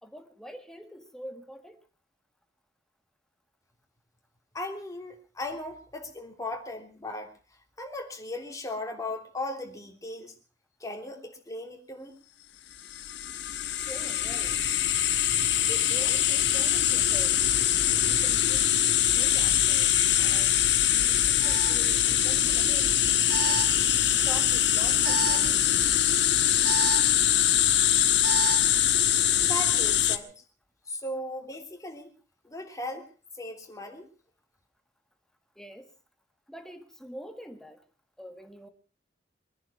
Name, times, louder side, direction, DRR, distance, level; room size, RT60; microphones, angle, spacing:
voice 1, 0.0-1.8 13.7-14.6 15.6-17.4 17.8-19.9 20.2-20.6 20.9-23.0 23.4-23.7 24.2-25.7 35.6-35.9 36.5-37.8 38.2-38.7, equal, 5° left, 7 dB, 1.6 m, -45 dB
voice 2, 4.5-7.3 7.8-10.3 10.8-12.2 29.4-30.3 30.9-32.1 32.4-33.1 33.4-34.1, left 1 dB, 20° left, 2 dB, 3.3 m, -37 dB
sound 1, 12.9-30.2, left 11 dB, 70° left, 1.2 m, -23 dB
Alarm, 20.6-20.7 21.4-28.8, right 6 dB, 70° right, 3.6 m, -36 dB
23.0 x 10.5 x 5.8 m, 0.38 s
head